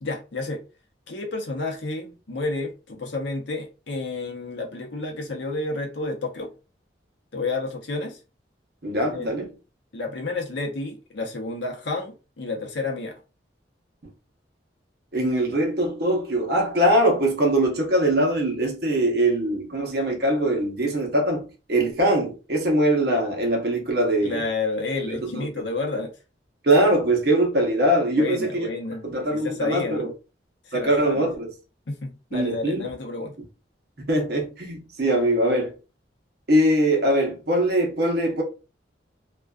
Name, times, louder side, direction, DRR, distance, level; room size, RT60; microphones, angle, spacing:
voice 1, 0.0-0.6 1.1-6.5 7.3-8.2 9.1-9.3 9.9-13.2 24.2-26.1 28.2-30.1 30.6-31.3 31.9-33.4, left 3 dB, 75° left, 0.7 m, -30 dB
voice 2, 8.8-9.5 15.1-24.4 25.1-25.5 26.6-28.7 29.0-30.1 30.7-31.5 32.3-32.9 34.1-35.7 36.5-38.4, right 1 dB, 55° right, 0.8 m, -22 dB
2.4 x 2.2 x 2.2 m
head